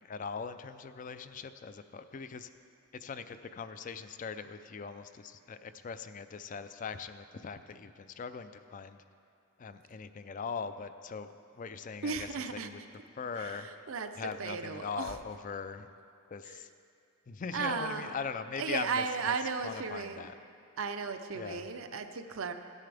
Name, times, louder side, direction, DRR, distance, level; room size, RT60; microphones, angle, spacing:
voice 1, 0.0-2.5 2.9-9.0 9.6-12.8 13.1-13.9 14.2-15.9 16.3-16.7 17.3-19.3 19.6-20.4 21.3-21.7, left 5 dB, 40° left, 11 dB, 0.4 m, -41 dB
voice 2, 12.0-12.7 13.4-14.1 14.4-15.1 16.5-16.6 17.5-18.1 18.6-20.2 20.8-22.5, right 5 dB, 75° right, 8 dB, 0.6 m, -35 dB
16.5 x 9.4 x 3.4 m, 2.4 s
head